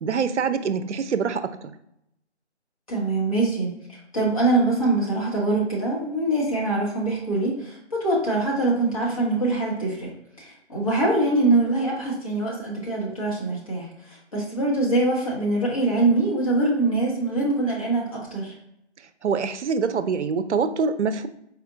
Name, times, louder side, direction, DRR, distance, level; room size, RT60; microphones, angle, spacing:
voice 1, 0.0-1.7 19.2-21.3, right 5 dB, 80° right, 11 dB, 0.5 m, -25 dB
voice 2, 2.9-3.7 4.1-10.1 10.4-18.5, right 2 dB, 30° left, -5 dB, 1.1 m, -23 dB
4.3 x 2.5 x 2.6 m, 0.79 s
figure-of-eight pair, 160°, 35 cm